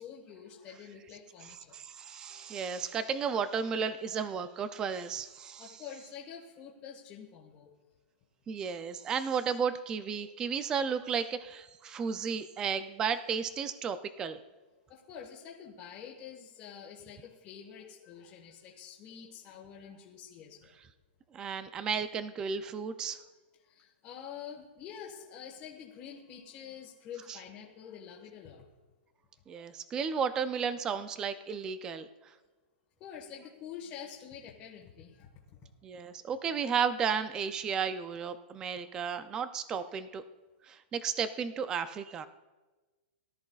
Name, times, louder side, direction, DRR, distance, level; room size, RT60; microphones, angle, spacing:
voice 1, 0.0-1.8 5.6-7.7 14.9-20.7 23.6-28.7 33.0-35.7, left 8 dB, 20° left, -4 dB, 1.5 m, -47 dB
voice 2, 1.7-5.7 8.5-14.4 21.3-23.2 27.3-27.4 29.5-32.1 35.8-40.2 40.6-42.3, right 6 dB, 10° right, 11 dB, 0.3 m, -33 dB
22.0 x 13.0 x 2.4 m, 1.2 s
supercardioid pair, 175°, 6 cm